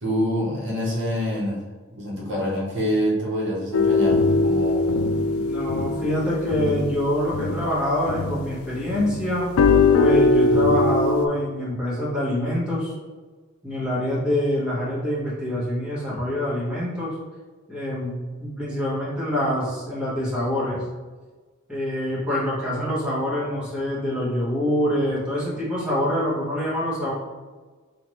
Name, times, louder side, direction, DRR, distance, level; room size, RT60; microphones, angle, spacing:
voice 1, 0.0-1.6 1.9-4.9, equal, 55° right, -4 dB, 1.0 m, -26 dB
sound 1, 3.7-8.6 8.9-11.3, left 3 dB, 80° left, 0.4 m, -21 dB
voice 2, 5.3-9.5 10.0-12.9 13.6-17.1 17.7-18.1 18.4-20.8 21.7-27.1, left 1 dB, 5° right, -9 dB, 1.2 m, -25 dB
5.7 x 2.5 x 3.1 m, 1.3 s
head